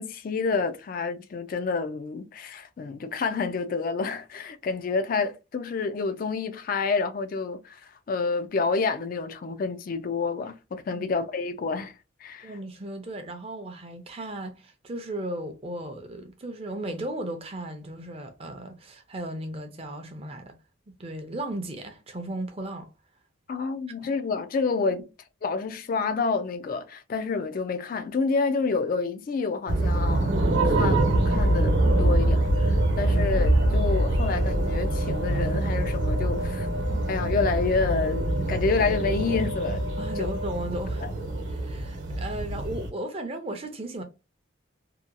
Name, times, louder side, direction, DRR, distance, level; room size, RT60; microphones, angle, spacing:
voice 1, 0.0-11.9 12.2-12.5 23.5-25.0 25.4-30.4 30.6-36.7 37.1-39.8 40.2-40.3 41.0-41.1, left 4 dB, 45° left, 0.3 m, -28 dB
voice 2, 12.4-20.6 21.0-22.9 24.0-24.1 40.0-41.0 41.5-44.0, right 1 dB, 30° right, 0.5 m, -35 dB
sound 1, 29.7-42.9, right 1 dB, 60° right, 0.9 m, -25 dB
sound 2, 30.5-41.0, right 2 dB, 80° right, 0.3 m, -34 dB
2.7 x 2.2 x 2.5 m
head